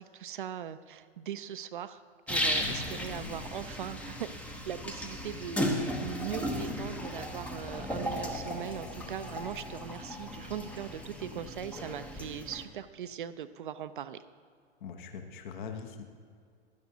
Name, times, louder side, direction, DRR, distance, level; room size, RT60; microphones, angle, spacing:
voice 1, 0.0-2.0 2.3-4.3 4.7-14.2, right 9 dB, 50° right, 12 dB, 0.5 m, -40 dB
sound 1, 2.3-12.6, equal, 5° left, 0.6 m, -35 dB
voice 2, 14.8-16.0, left 6 dB, 45° left, 6 dB, 1.1 m, -41 dB
15.5 x 12.0 x 2.8 m, 2.1 s
figure-of-eight pair, 105°, 34 cm